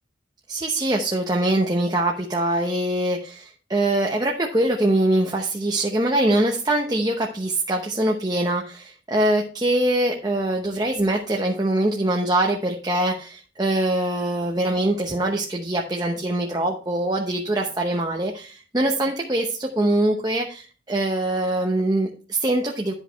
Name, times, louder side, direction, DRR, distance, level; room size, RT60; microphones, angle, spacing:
voice 1, 0.5-22.9, right 1 dB, 20° right, 0 dB, 0.9 m, -23 dB
10.5 x 5.1 x 4.5 m, 0.38 s
head